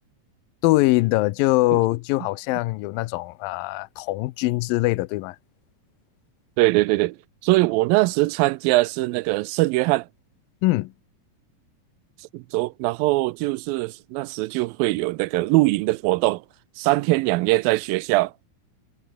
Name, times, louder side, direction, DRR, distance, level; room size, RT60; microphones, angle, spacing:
voice 1, 0.6-5.4 10.6-10.9, left 19 dB, 85° left, 2.4 m, -22 dB
voice 2, 6.6-7.2 7.4-10.1 12.3-16.4 16.8-18.3, right 21 dB, 85° right, 2.4 m, -21 dB
omnidirectional pair, 4.0 m